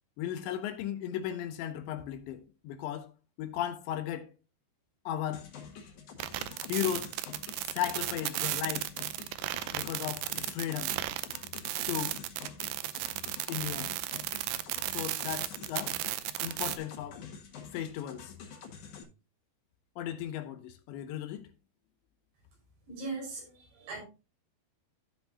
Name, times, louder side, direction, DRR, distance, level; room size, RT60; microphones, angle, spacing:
voice 1, 0.2-3.1 3.4-4.3 5.1-5.5 6.6-7.1 7.6-8.9 9.7-11.0 11.9-12.2 13.5-13.9 14.9-15.9 16.4-17.2 17.7-18.3 20.0-21.5, left 11 dB, 80° left, 2.9 m, -36 dB
sound 1, 5.3-19.0, left 6 dB, 55° left, 2.5 m, -48 dB
sound 2, 6.2-16.8, right 15 dB, 85° right, 2.8 m, -34 dB
voice 2, 22.9-24.0, right 3 dB, 65° right, 7.3 m, -39 dB
15.0 x 6.0 x 2.8 m
omnidirectional pair, 5.4 m